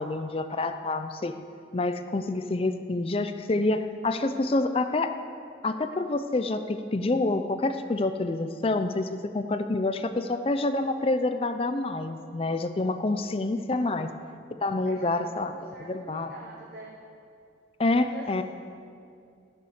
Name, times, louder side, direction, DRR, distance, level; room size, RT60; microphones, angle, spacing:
voice 1, 0.0-1.4 1.7-5.1 5.6-14.1 14.6-15.5 15.8-16.3 17.8-18.4, left 2 dB, 30° left, 9 dB, 0.4 m, -27 dB
voice 2, 13.9-14.2 14.8-17.0 18.0-18.4, right 2 dB, 55° right, -2 dB, 1.2 m, -44 dB
14.5 x 6.9 x 6.5 m, 2.4 s
head